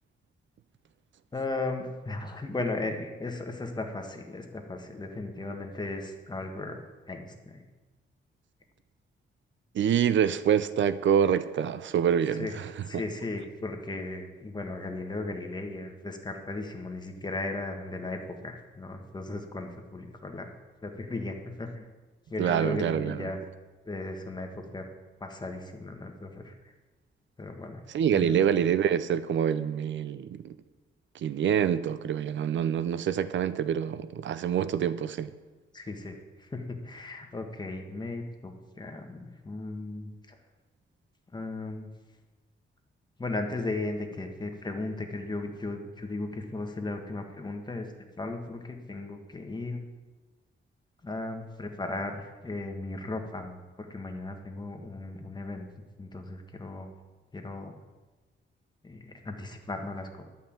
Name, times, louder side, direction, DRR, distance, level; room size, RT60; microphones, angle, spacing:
voice 1, 1.3-6.8 7.1-7.6 12.4-12.5 12.9-18.2 18.4-20.5 20.8-21.9 22.3-23.4 23.8-24.8 25.2-26.5 27.4-27.8 28.1-28.5 35.7-38.5 38.8-40.1 41.3-41.9 43.2-47.9 48.2-49.8 51.0-55.7 56.0-56.9 57.3-57.7 58.8-60.2, left 2 dB, 20° left, 1.5 m, -36 dB
voice 2, 9.7-13.0 22.4-23.3 27.9-30.5 31.1-35.3, right 8 dB, 70° right, 0.5 m, -26 dB
11.5 x 5.6 x 8.7 m
cardioid pair, 110°, 20 cm